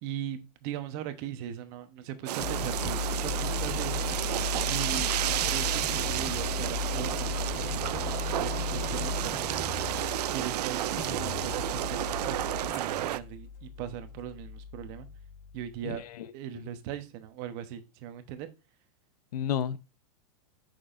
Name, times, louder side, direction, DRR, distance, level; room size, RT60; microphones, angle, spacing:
voice 1, 0.0-4.4 4.7-8.0 8.4-9.7 10.3-15.1 15.5-16.1 16.3-18.5, right 10 dB, 40° right, 1.0 m, -39 dB
sound 1, 2.3-13.2, right 14 dB, 80° right, 0.4 m, -31 dB
sound 2, 2.4-15.8, left 5 dB, 40° left, 1.1 m, -36 dB
voice 2, 15.8-16.3 16.5-16.6 19.3-19.8, left 9 dB, 70° left, 0.7 m, -32 dB
6.3 x 6.3 x 2.5 m
supercardioid pair, 150°, 20 cm